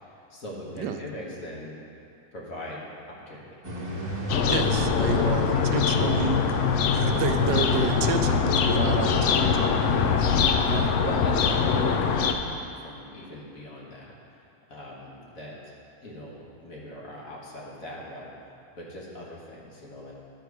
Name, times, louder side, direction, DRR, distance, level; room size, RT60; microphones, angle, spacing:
voice 1, 0.1-1.8 2.3-3.6 5.0-5.3 9.8-14.2 14.7-15.7 16.0-18.3 18.7-20.1, equal, 55° left, -4 dB, 1.7 m, -40 dB
sound 1, 3.6-10.1, right 1 dB, 30° right, 0.8 m, -35 dB
sound 2, 4.3-12.3, left 6 dB, 90° left, 0.6 m, -23 dB
voice 2, 4.5-6.6 6.9-9.7 10.6-10.9, right 6 dB, 90° right, 6 dB, 1.3 m, -30 dB
11.5 x 4.4 x 4.7 m, 2.7 s
omnidirectional pair, 1.9 m